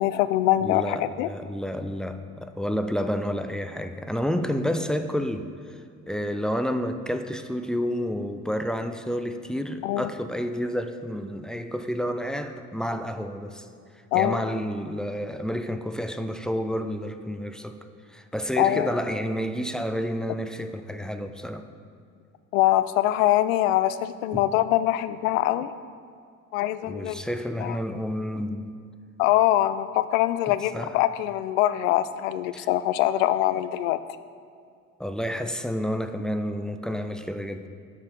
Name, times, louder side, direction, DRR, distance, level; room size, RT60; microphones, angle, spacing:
voice 1, 0.0-1.3 9.8-10.1 14.1-14.4 18.6-18.9 22.5-25.7 26.5-27.2 27.6-27.8 29.2-34.0, left 14 dB, 70° left, 13 dB, 0.5 m, -23 dB
voice 2, 0.6-5.8 6.1-13.7 14.1-17.8 18.1-21.7 24.3-24.4 26.9-28.7 30.7-30.9 32.5-32.7 35.0-37.7, equal, ahead, 8 dB, 0.4 m, -30 dB
7.8 x 5.7 x 6.7 m, 2.2 s
figure-of-eight pair, 55°, 41 cm